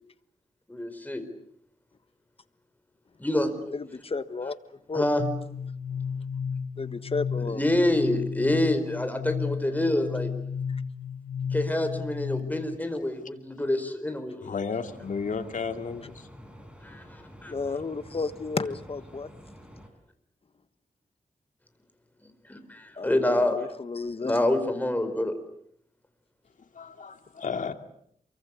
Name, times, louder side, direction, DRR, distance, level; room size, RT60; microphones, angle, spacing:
voice 1, 0.7-1.2 3.2-3.5 4.9-5.2 7.5-10.3 11.5-14.4 16.8-17.5 22.5-23.5 24.2-25.3, left 1 dB, 10° left, 4.7 m, -27 dB
voice 2, 3.7-5.1 6.8-7.6 10.7-10.8 17.4-19.3 22.9-24.4, left 4 dB, 45° left, 1.5 m, -33 dB
sound 1, 5.2-12.8, left 6 dB, 85° left, 1.3 m, -33 dB
voice 3, 14.4-16.3 26.7-27.7, left 5 dB, 70° left, 2.6 m, -33 dB
sound 2, 14.8-19.9, equal, 10° right, 5.8 m, -48 dB
28.0 x 23.5 x 8.4 m
wide cardioid pair, 105°, 14 cm